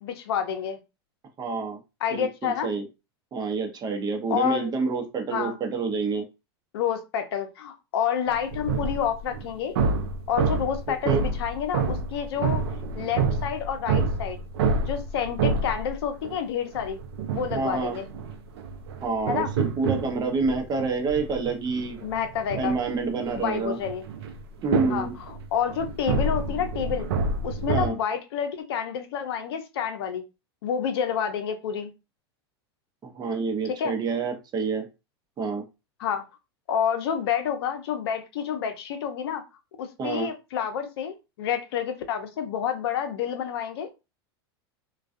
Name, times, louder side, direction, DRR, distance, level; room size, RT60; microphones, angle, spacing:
voice 1, 0.0-0.8 2.0-2.7 4.3-4.7 5.3-5.6 6.7-9.8 10.3-12.6 13.0-14.4 14.8-17.0 17.3-18.1 19.3-19.5 22.0-22.8 23.4-24.0 24.9-27.1 27.4-30.2 30.6-31.9 33.8-33.9 36.0-36.2 36.7-39.4 39.8-43.9, left 8 dB, 70° left, 6 dB, 0.6 m, -29 dB
voice 2, 1.4-1.8 2.1-2.9 3.3-6.3 10.9-11.2 17.5-18.0 19.0-22.0 22.5-23.8 24.6-25.1 27.7-28.0 33.0-34.9 35.4-35.6 40.0-40.3, right 4 dB, 30° right, 3 dB, 0.7 m, -28 dB
sound 1, 8.3-16.4 16.7-27.9, right 4 dB, 75° right, 0.5 m, -28 dB
2.3 x 2.3 x 2.5 m, 0.27 s
hypercardioid pair, 95°, 14 cm